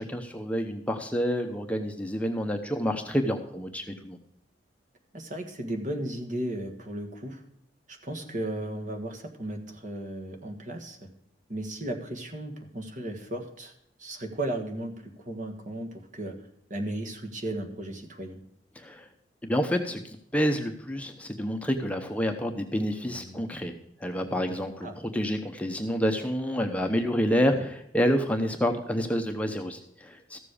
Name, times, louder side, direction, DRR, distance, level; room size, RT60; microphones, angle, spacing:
voice 1, 0.0-4.2 18.8-19.0 19.4-23.7 24.0-30.4, equal, 10° left, 4 dB, 0.8 m, -28 dB
voice 2, 5.1-7.4 7.9-11.0 11.5-13.7 14.0-16.3 16.7-18.4 23.0-23.4 24.8-25.0 27.4-27.6, right 1 dB, 45° right, 5 dB, 1.6 m, -35 dB
14.0 x 7.4 x 4.9 m, 0.76 s
head